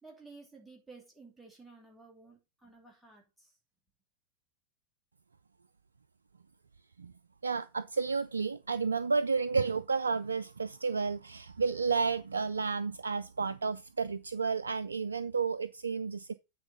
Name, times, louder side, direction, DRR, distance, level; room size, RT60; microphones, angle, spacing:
voice 1, 0.0-3.5, right 3 dB, 5° right, 2.7 m, -54 dB
voice 2, 7.4-16.3, right 5 dB, 75° right, 0.3 m, -31 dB
8.9 x 4.6 x 5.3 m
figure-of-eight pair, 90°, 0 cm